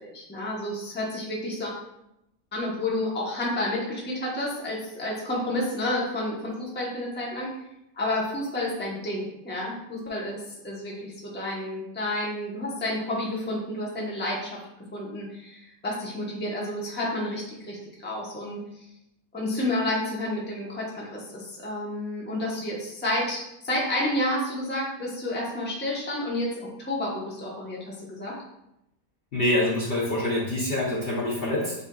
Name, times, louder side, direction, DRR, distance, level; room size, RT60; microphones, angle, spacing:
voice 1, 0.0-1.7 2.5-7.5 7.9-14.6 14.9-18.6 19.3-26.5 26.8-28.4, left 1 dB, 10° left, -4 dB, 0.8 m, -30 dB
voice 2, 29.3-31.7, left 1 dB, 50° left, -5 dB, 0.9 m, -25 dB
7.9 x 2.6 x 2.3 m, 0.85 s
omnidirectional pair, 1.5 m